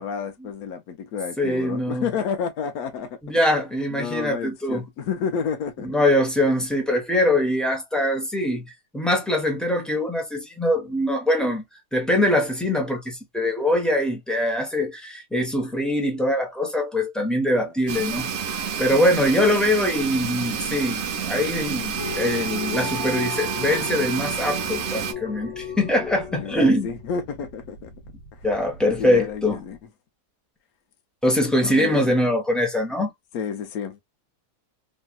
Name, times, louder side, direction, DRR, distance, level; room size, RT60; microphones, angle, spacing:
voice 1, 0.0-3.2 3.9-6.0 10.8-10.9 17.6-17.7 26.3-27.9 28.3-28.4 29.0-29.8 31.6-32.2 33.3-34.0, left 6 dB, 70° left, 1.0 m, -30 dB
voice 2, 1.4-2.1 3.2-4.8 5.8-11.6 11.9-18.3 18.8-26.9 28.4-29.6 31.2-33.1, left 1 dB, ahead, 0.7 m, -23 dB
sound 1, 17.9-25.1, right 7 dB, 60° right, 0.7 m, -29 dB
sound 2, 21.9-29.5, left 4 dB, 45° left, 1.3 m, -37 dB
3.1 x 2.6 x 2.2 m
omnidirectional pair, 1.7 m